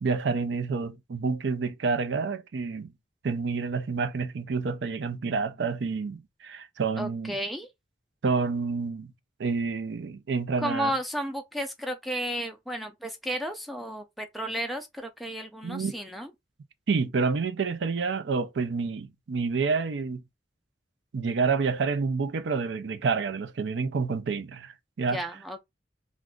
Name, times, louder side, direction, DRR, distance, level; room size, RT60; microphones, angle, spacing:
voice 1, 0.0-2.9 3.2-7.4 8.2-9.1 9.4-10.9 15.6-16.0 16.9-20.2 21.1-25.2, right 4 dB, 80° right, 0.5 m, -28 dB
voice 2, 7.0-7.7 10.6-16.3 25.1-25.6, equal, ahead, 0.4 m, -33 dB
2.4 x 2.3 x 3.6 m
head